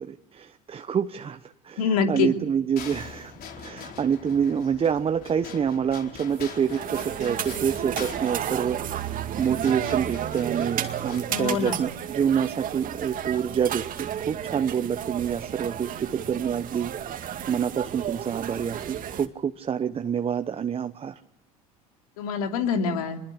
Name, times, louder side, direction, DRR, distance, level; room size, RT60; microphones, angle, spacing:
voice 1, 0.0-21.1, right 7 dB, 30° right, 8 dB, 1.0 m, -27 dB
voice 2, 1.8-2.3 11.3-11.8 22.2-23.2, left 6 dB, 80° left, 5 dB, 3.0 m, -25 dB
sound 1, 2.8-11.2, left 6 dB, 55° left, 4.6 m, -43 dB
sound 2, 6.3-19.3, right 10 dB, 45° right, 2.2 m, -32 dB
26.0 x 21.5 x 8.5 m, 0.77 s
hypercardioid pair, 80°, 19 cm